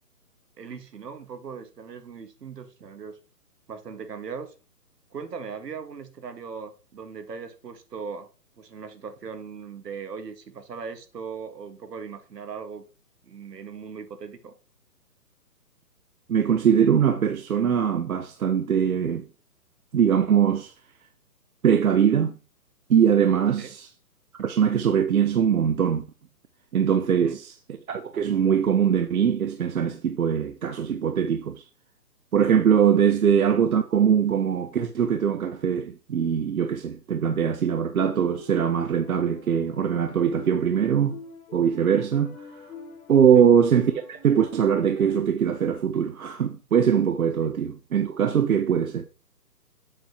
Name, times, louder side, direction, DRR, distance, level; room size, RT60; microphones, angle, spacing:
voice 1, 0.6-3.2 3.7-4.5 5.1-8.3 8.6-12.8 13.2-14.5 23.6-23.7 27.1-27.4 43.3-43.5, right 6 dB, 80° right, 1.5 m, -39 dB
voice 2, 16.3-19.3 19.9-20.7 21.6-22.3 22.9-23.9 24.3-26.0 26.7-27.5 27.9-31.6 32.3-41.2 41.5-42.7 43.1-49.0, right 8 dB, 65° right, 0.8 m, -22 dB
sound 1, 38.0-45.2, left 4 dB, 60° left, 1.8 m, -44 dB
7.6 x 6.7 x 2.8 m
hypercardioid pair, 170°, 48 cm